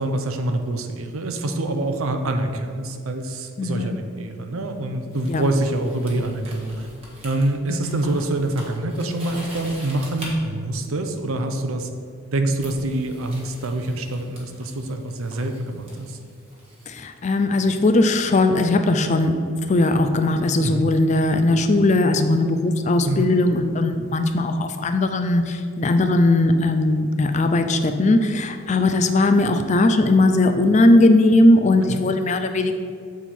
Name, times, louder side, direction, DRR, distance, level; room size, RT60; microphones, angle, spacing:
voice 1, 0.0-6.9 7.2-11.9 12.3-16.2 20.6-20.9 23.1-23.3 31.9-32.0, right 2 dB, 80° right, 6 dB, 0.6 m, -25 dB
voice 2, 3.6-4.0 5.3-5.4 7.7-8.0 16.9-19.3 19.7-32.7, left 2 dB, 35° left, 7 dB, 0.4 m, -19 dB
sound 1, 5.1-10.3 11.6-11.8 12.6-16.9, equal, 30° right, 1.4 m, -43 dB
7.1 x 4.5 x 4.3 m, 2.3 s
head